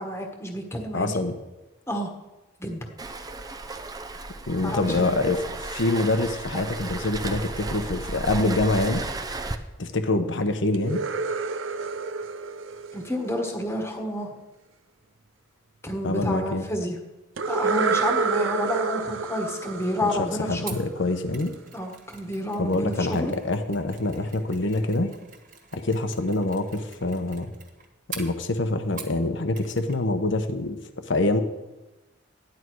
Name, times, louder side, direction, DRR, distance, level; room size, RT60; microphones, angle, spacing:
voice 1, 0.0-1.1 1.9-2.1 2.6-2.9 4.6-5.1 12.9-14.3 15.8-17.0 17.5-20.8 21.7-23.3, left 1 dB, 15° left, 3 dB, 1.4 m, -30 dB
voice 2, 0.9-1.3 4.5-9.0 9.8-11.0 16.0-16.6 20.0-21.5 22.6-25.1 25.7-27.5 28.1-30.8 31.1-31.4, left 2 dB, 70° left, 8 dB, 1.1 m, -25 dB
Waves surf, 3.0-9.5, right 2 dB, 20° right, 0.7 m, -34 dB
sound 1, 10.7-13.7 17.4-21.1, right 4 dB, 80° right, 0.7 m, -28 dB
Mechanisms, 20.7-29.3 29.5-30.0 30.3-30.4, right 6 dB, 45° right, 1.8 m, -45 dB
14.0 x 11.0 x 4.7 m, 1.1 s
head